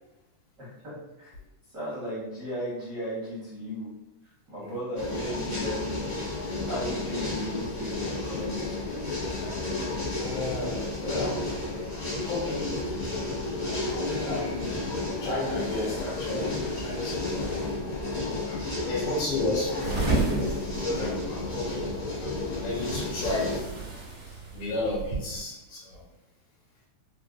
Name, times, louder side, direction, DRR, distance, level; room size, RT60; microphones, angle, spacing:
voice 1, 0.6-1.3 1.7-3.9 4.5-5.9 6.4-9.1, equal, 85° right, -8 dB, 0.8 m, -36 dB
sound 1, 5.0-23.6, left 2 dB, 70° left, 0.6 m, -32 dB
voice 2, 10.2-11.4 12.2-12.7 13.6-14.7 15.2-17.5 18.5-23.7 24.5-26.0, left 2 dB, 90° left, -6 dB, 2.9 m, -33 dB
sound 2, 19.8-25.4, right 2 dB, 40° right, 1.4 m, -32 dB
5.8 x 2.5 x 2.2 m, 0.92 s
omnidirectional pair, 3.4 m